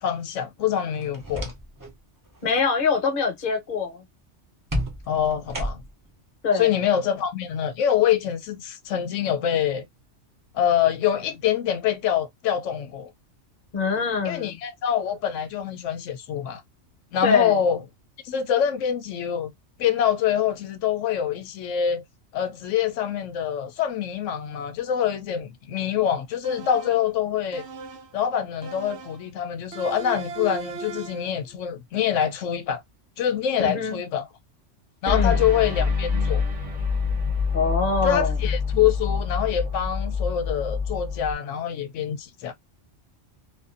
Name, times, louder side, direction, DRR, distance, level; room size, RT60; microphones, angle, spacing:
voice 1, 0.0-1.5 5.1-5.8 6.5-9.8 10.5-13.1 14.2-16.6 17.1-17.8 18.2-19.5 19.8-22.0 22.3-27.6 28.1-32.8 33.2-34.3 35.0-36.4 38.0-42.5, left 9 dB, 85° left, 0.9 m, -25 dB
sound 1, 0.9-1.9 2.3-2.6 4.7-6.1, equal, 20° right, 0.5 m, -32 dB
voice 2, 2.4-4.0 6.4-6.7 13.7-14.6 17.2-17.6 33.6-34.0 35.1-35.4 37.5-38.3, left 5 dB, 50° left, 0.9 m, -24 dB
sound 2, 26.4-27.1 27.5-28.2 28.6-29.3 29.7-31.3, right 4 dB, 70° right, 0.8 m, -37 dB
sound 3, 35.1-41.3, left 5 dB, 40° right, 1.0 m, -26 dB
2.5 x 2.4 x 2.4 m
omnidirectional pair, 1.3 m